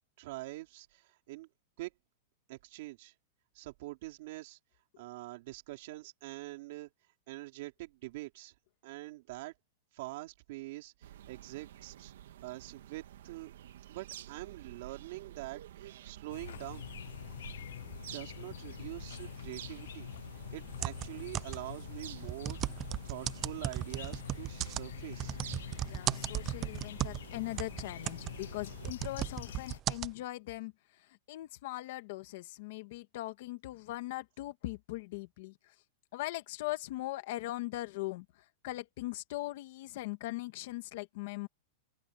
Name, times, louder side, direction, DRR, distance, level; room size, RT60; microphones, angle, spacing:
voice 1, 0.2-1.5 1.8-1.9 2.5-3.1 3.5-4.6 5.0-6.9 7.3-8.5 8.8-9.5 9.9-12.1 12.4-13.5 13.9-16.9 18.1-20.1 20.5-25.4, right 19 dB, 45° right, 4.0 m, -45 dB
sound 1, 11.0-28.9, right 12 dB, 70° right, 1.8 m, -51 dB
sound 2, 16.3-29.8, left 11 dB, 75° left, 0.4 m, -46 dB
sound 3, 20.8-21.8 22.2-27.3 27.6-30.1, right 13 dB, 20° right, 0.5 m, -36 dB
voice 2, 25.8-35.7 36.1-41.5, left 18 dB, 45° left, 1.6 m, -40 dB
open air
supercardioid pair, 175°, 0 cm